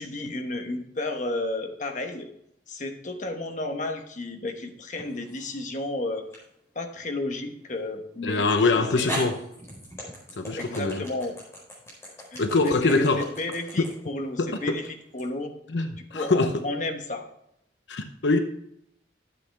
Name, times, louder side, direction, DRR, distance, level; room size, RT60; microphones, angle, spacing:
voice 1, 0.0-2.3 2.7-6.3 6.7-8.4 8.7-9.3 10.6-11.4 12.3-15.5 16.1-17.2, left 2 dB, 40° left, 1.2 m, -32 dB
sound 1, 5.0-5.6 6.3-6.4 8.3-8.4 9.1-15.3, equal, 15° left, 4.4 m, -38 dB
voice 2, 8.2-9.4 10.4-11.0 12.4-13.3 14.4-14.8 15.7-16.6 17.9-18.4, left 3 dB, 80° left, 0.8 m, -24 dB
12.0 x 7.9 x 3.5 m
head